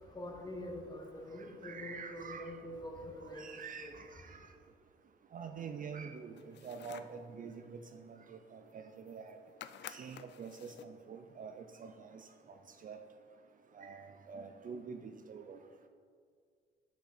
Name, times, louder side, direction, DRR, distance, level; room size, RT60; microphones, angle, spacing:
voice 1, 0.1-3.4 3.8-3.9, left 1 dB, 20° left, 0 dB, 1.2 m, -45 dB
voice 2, 1.4-2.5 3.3-4.4 5.3-9.4 9.9-12.3 12.8-13.0 13.7-15.6, right 6 dB, 45° right, 7 dB, 0.4 m, -46 dB
sound 1, 6.4-7.2 8.7-8.8 9.0-9.3 9.6-11.0, left 10 dB, 60° left, 0.4 m, -51 dB
5.9 x 5.5 x 4.2 m, 2.1 s
cardioid pair, 90°, 20 cm